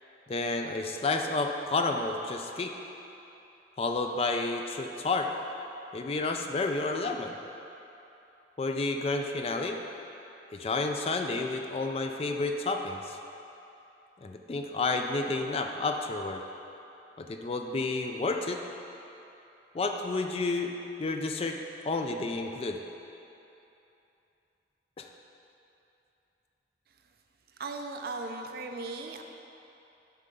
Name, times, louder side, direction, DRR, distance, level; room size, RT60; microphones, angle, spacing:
voice 1, 0.3-2.7 3.8-5.3 5.9-7.4 8.6-9.8 10.5-13.2 14.2-16.4 17.2-18.6 19.7-20.7 21.0-21.6 21.8-22.8 25.0-25.1, left 3 dB, 35° left, 4 dB, 0.4 m, -30 dB
voice 2, 27.6-29.2, right 3 dB, 55° right, 4 dB, 0.5 m, -37 dB
7.2 x 4.4 x 5.3 m, 2.9 s
head